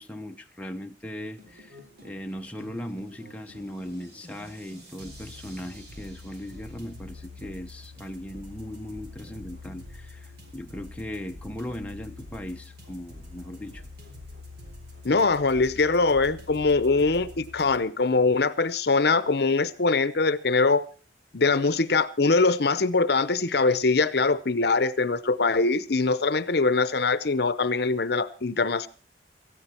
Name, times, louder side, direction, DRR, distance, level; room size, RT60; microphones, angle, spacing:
voice 1, 0.0-13.8, equal, 5° left, 3 dB, 0.9 m, -38 dB
sound 1, 1.2-17.8, left 2 dB, 60° right, 3.9 m, -46 dB
voice 2, 15.0-20.9 21.3-28.9, left 3 dB, 60° left, 15 dB, 0.8 m, -23 dB
18.5 x 14.0 x 4.4 m, 0.36 s
head